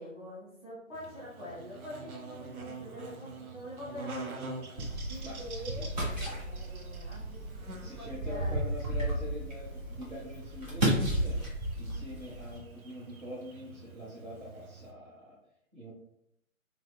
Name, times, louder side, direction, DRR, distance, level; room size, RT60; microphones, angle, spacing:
voice 1, 0.0-4.3 5.1-8.6, equal, 10° left, -12 dB, 0.7 m, -45 dB
Buzz, 0.9-14.9, right 3 dB, 85° right, 0.5 m, -47 dB
sound 1, 4.8-12.6, right 1 dB, 30° right, 0.8 m, -33 dB
voice 2, 7.8-11.4 11.8-15.4 15.7-15.9, equal, 60° right, -7 dB, 0.9 m, -44 dB
2.9 x 2.0 x 2.2 m, 0.75 s
figure-of-eight pair, 140°, 42 cm